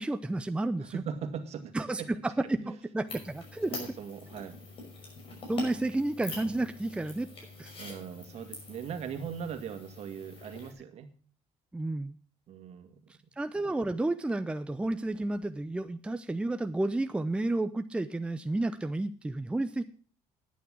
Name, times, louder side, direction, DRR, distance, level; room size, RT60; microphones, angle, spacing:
voice 1, 0.0-1.0 1.7-3.7 5.5-7.3 7.6-7.7 11.7-12.2 13.4-19.8, right 2 dB, 10° right, 9 dB, 0.6 m, -31 dB
voice 2, 0.9-2.1 2.6-2.8 3.7-4.6 7.8-11.1 12.5-13.0, right 7 dB, 60° right, 8 dB, 1.9 m, -40 dB
sound 1, 3.1-10.7, left 3 dB, 50° left, 5.7 m, -44 dB
10.5 x 9.3 x 6.1 m, 0.41 s
cardioid pair, 115°, 12 cm